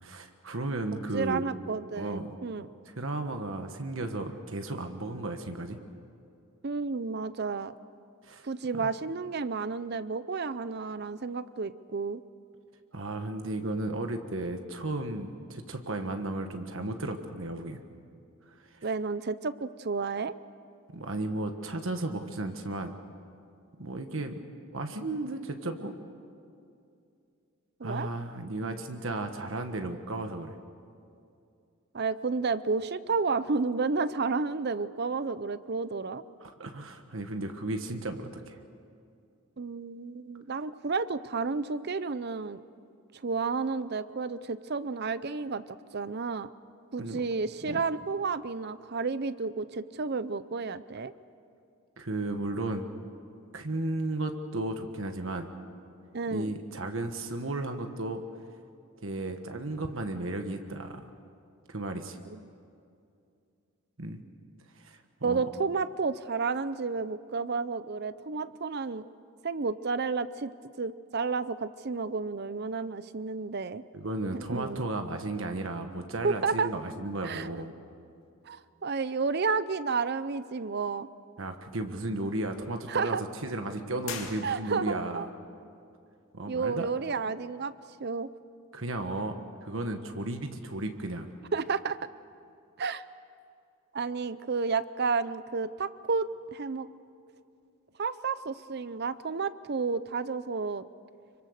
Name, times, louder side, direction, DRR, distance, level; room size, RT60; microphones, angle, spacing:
voice 1, 0.0-1.4 1.9-2.3 2.9-5.8 8.2-8.5 8.7-8.9 12.9-17.8 20.9-22.9 23.8-24.4 24.7-26.0 27.8-30.6 36.4-38.6 47.0-47.2 47.7-47.8 52.0-52.9 53.5-55.5 56.3-58.2 59.0-61.1 61.7-62.2 64.0-64.2 64.8-65.4 73.9-77.7 81.4-83.2 83.4-85.3 86.3-86.9 88.7-89.3 89.6-91.3, right 2 dB, 65° right, 6 dB, 1.4 m, -34 dB
voice 2, 0.9-2.7 6.6-7.7 8.4-12.2 18.8-20.3 27.8-28.1 31.9-36.2 39.6-42.6 43.2-45.6 45.9-46.5 46.9-51.1 56.1-56.5 62.3-62.4 65.2-69.0 69.4-73.8 74.3-74.9 76.2-76.7 77.2-77.5 78.5-81.1 82.9-83.2 84.4-85.3 86.5-87.7 88.0-88.3 91.5-92.0 92.8-93.0 93.9-96.9 98.0-100.8, right 4 dB, 50° right, 15 dB, 0.6 m, -31 dB
sound 1, 84.0-85.1, left 6 dB, 65° left, 2.4 m, -40 dB
26.0 x 24.0 x 6.6 m, 2.5 s
head